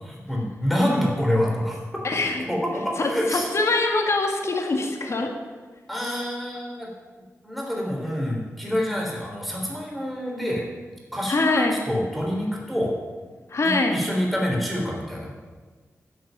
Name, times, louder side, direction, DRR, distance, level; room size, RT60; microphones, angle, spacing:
voice 1, 0.0-1.8 2.5-3.5 5.2-5.3 5.9-6.9 7.4-10.7 11.1-12.9 13.6-15.3, equal, ahead, -2 dB, 3.5 m, -26 dB
voice 2, 2.0-2.4 3.0-5.3 11.3-11.7 13.5-14.0, left 3 dB, 55° left, 3 dB, 1.9 m, -23 dB
10.5 x 6.5 x 9.0 m, 1.3 s
cardioid pair, 70°, 6 cm